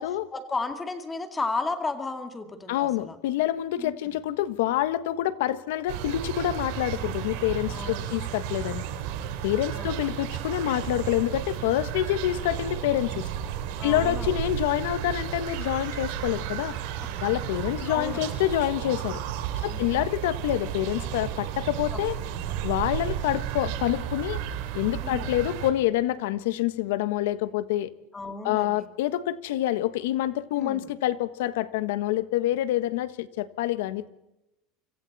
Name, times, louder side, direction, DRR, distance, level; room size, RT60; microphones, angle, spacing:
voice 1, 0.3-3.2 3.8-4.2 7.7-8.1 9.8-10.2 13.8-14.4 16.7-16.8 17.9-18.4 19.7-20.0 22.3-22.5 25.0-25.3 28.1-28.9 30.6-30.9, left 3 dB, 10° left, 6 dB, 2.2 m, -34 dB
voice 2, 2.7-8.8 9.4-13.3 13.8-16.7 17.2-19.2 19.6-22.2 22.6-24.4 24.7-27.9 28.4-34.1, left 13 dB, 85° left, 13 dB, 1.4 m, -27 dB
sound 1, 5.9-25.7, right 10 dB, 60° right, 3.6 m, -33 dB
29.0 x 26.0 x 4.2 m, 0.91 s
cardioid pair, 175°, 0 cm